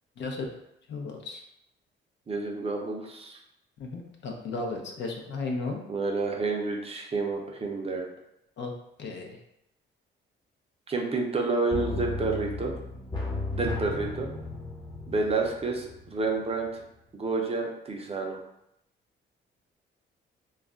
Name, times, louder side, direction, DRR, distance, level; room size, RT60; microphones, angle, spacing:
voice 1, 0.2-0.5 0.9-1.4 3.8-5.8 8.6-8.7 9.0-9.4, left 3 dB, 65° left, 1 dB, 0.6 m, -34 dB
voice 2, 2.3-3.4 5.9-8.1 10.9-12.7 13.5-14.3 15.1-16.8 17.1-18.4, right 3 dB, 30° right, 1 dB, 0.5 m, -29 dB
sound 1, 11.7-16.4 16.7-16.8, left 3 dB, 20° left, 0.7 m, -35 dB
2.4 x 2.1 x 3.6 m, 0.82 s
cardioid pair, 90°, 20 cm